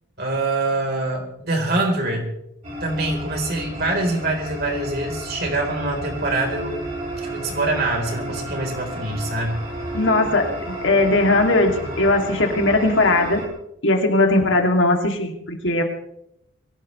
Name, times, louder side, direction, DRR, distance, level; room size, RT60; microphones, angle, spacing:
voice 1, 0.2-2.3 2.8-6.8 7.3-9.6, right 2 dB, 50° right, 2 dB, 4.1 m, -24 dB
sound 1, 2.6-13.5, equal, 35° right, 4.8 m, -32 dB
voice 2, 9.9-10.5 10.8-13.4 13.8-15.8, left 2 dB, 65° left, 2 dB, 2.7 m, -19 dB
23.0 x 17.5 x 3.3 m, 0.77 s
head